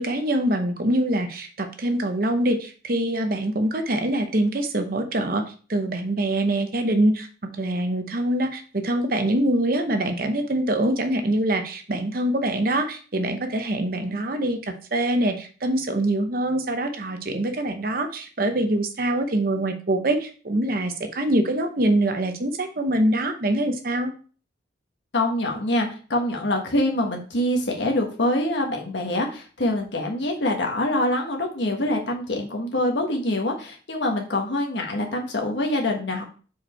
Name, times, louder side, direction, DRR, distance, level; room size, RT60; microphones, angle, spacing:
voice 1, 0.0-5.4 5.7-24.1, right 1 dB, 50° right, 6 dB, 0.8 m, -24 dB
voice 2, 25.1-36.2, left 1 dB, 65° left, 1 dB, 1.4 m, -25 dB
4.8 x 4.4 x 4.3 m, 0.39 s
head